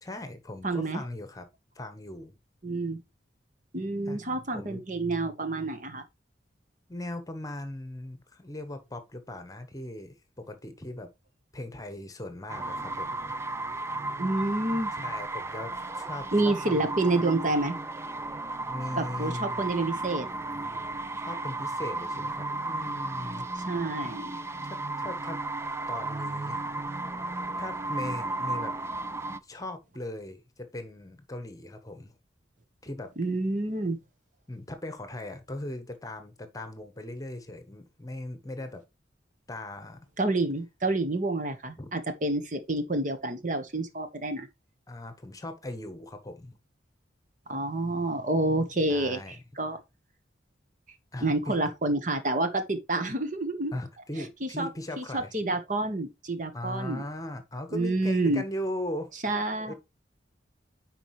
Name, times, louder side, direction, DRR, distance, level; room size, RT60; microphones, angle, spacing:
voice 1, 0.0-1.4 1.7-2.4 4.1-4.2 4.5-4.8 6.9-11.1 11.5-13.3 14.9-16.9 18.7-19.6 21.2-23.5 24.0-24.2 24.6-25.4 25.9-26.6 27.6-28.7 29.4-32.1 32.8-33.1 34.5-38.8 39.5-40.0 41.8-41.9 44.9-46.6 48.9-49.4 51.1-51.6 53.7-55.3 56.5-59.1 59.7-59.8, left 1 dB, 20° left, 1.2 m, -39 dB
voice 2, 0.6-1.0 2.6-3.0 3.7-6.0 14.2-14.9 16.3-17.8 19.0-20.3 23.7-24.3 33.2-34.0 40.2-44.5 47.5-49.8 51.2-53.7 54.4-54.7 55.0-57.0 57.7-58.4 59.2-59.7, right 2 dB, 40° right, 1.2 m, -28 dB
sound 1, 12.5-29.4, right 2 dB, 15° right, 0.4 m, -34 dB
10.0 x 4.6 x 3.1 m
head